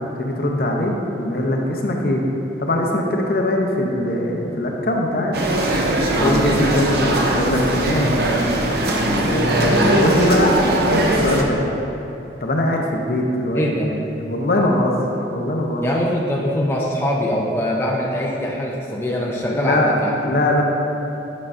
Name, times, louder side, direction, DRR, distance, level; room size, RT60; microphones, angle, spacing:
voice 1, 0.2-2.2 2.6-5.4 6.2-8.6 9.2-11.6 12.4-15.9 19.5-19.9 20.2-20.6, left 1 dB, 55° left, 0 dB, 0.6 m, -21 dB
sound 1, 5.3-11.4, right 1 dB, 60° right, 0.6 m, -20 dB
voice 2, 6.2-6.5 13.5-13.9 15.8-20.3, equal, 15° left, -3 dB, 0.4 m, -22 dB
8.4 x 5.4 x 2.5 m, 2.9 s
head